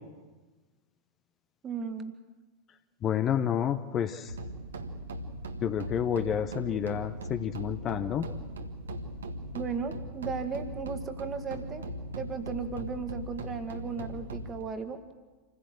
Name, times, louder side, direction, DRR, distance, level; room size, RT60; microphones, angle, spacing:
voice 1, 1.6-2.1 9.5-11.8 12.1-15.0, right 5 dB, 25° right, 9 dB, 1.9 m, -35 dB
voice 2, 3.0-4.3 5.6-8.3, left 9 dB, 30° left, 10 dB, 0.9 m, -29 dB
sound 1, 4.3-14.6, right 1 dB, 65° right, 1.6 m, -39 dB
27.0 x 16.0 x 7.8 m, 1.3 s
figure-of-eight pair, 90°, 0 cm